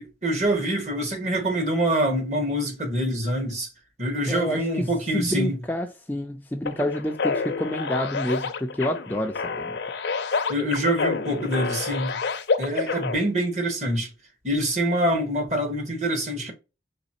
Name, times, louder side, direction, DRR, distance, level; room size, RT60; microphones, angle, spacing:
voice 1, 0.0-3.7 4.0-5.6 10.5-12.2 12.6-14.1 14.4-16.5, right 1 dB, 40° right, 1.1 m, -25 dB
voice 2, 4.3-4.9 5.1-9.8, equal, 10° left, 0.3 m, -28 dB
sound 1, 6.7-13.2, left 4 dB, 70° left, 0.5 m, -28 dB
4.0 x 3.2 x 2.7 m
head